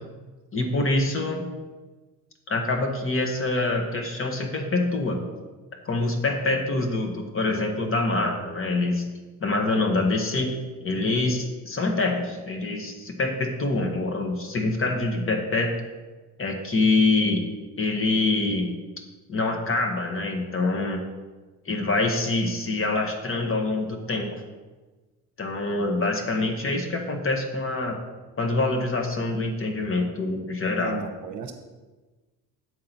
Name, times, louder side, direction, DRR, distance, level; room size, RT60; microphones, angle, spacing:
voice 1, 0.5-1.4 2.5-5.2 5.8-9.1 9.4-15.8 16.4-17.5 17.8-18.8 19.3-21.0 21.6-24.4 25.4-28.0 28.4-31.0, left 2 dB, 30° left, 3 dB, 1.2 m, -25 dB
voice 2, 30.8-31.5, right 6 dB, 50° right, 5 dB, 1.0 m, -35 dB
7.6 x 3.8 x 5.8 m, 1.2 s
supercardioid pair, 75°, 40 cm